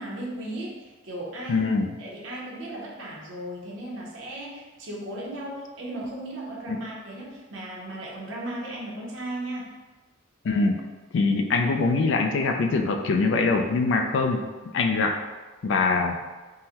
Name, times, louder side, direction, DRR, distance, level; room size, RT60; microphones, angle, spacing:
voice 1, 0.0-1.7 2.0-9.7, right 1 dB, 70° right, -4 dB, 0.7 m, -36 dB
voice 2, 1.5-1.9 6.7-6.8 10.4-10.8 11.1-14.4 14.7-15.2 15.6-16.2, left 3 dB, 65° left, 4 dB, 0.3 m, -23 dB
3.7 x 2.1 x 2.8 m, 1.2 s
head